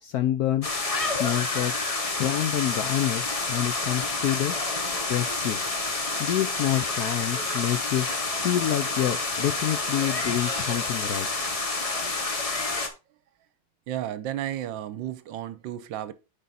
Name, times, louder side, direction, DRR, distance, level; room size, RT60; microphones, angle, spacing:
voice 1, 0.0-0.7 1.0-1.7 2.2-4.5 5.1-5.6 6.2-8.1 8.4-11.3, left 12 dB, 70° left, 0.9 m, -27 dB
sound 1, 0.6-12.9, left 3 dB, 30° left, 0.6 m, -29 dB
voice 2, 13.9-16.1, right 12 dB, 80° right, 1.3 m, -33 dB
9.2 x 4.0 x 4.0 m
omnidirectional pair, 2.1 m